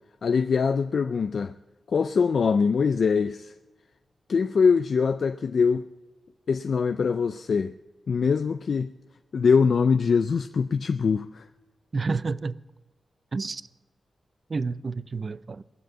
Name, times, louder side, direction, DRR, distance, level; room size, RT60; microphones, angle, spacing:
voice 1, 0.2-1.5 1.9-3.5 4.3-5.9 6.5-7.7 8.1-8.9 9.3-11.4, left 5 dB, 60° left, 0.4 m, -23 dB
voice 2, 11.9-12.6 13.3-13.6 14.5-15.6, right 4 dB, 40° right, 0.4 m, -29 dB
19.5 x 7.6 x 7.8 m
wide cardioid pair, 145°, 0 cm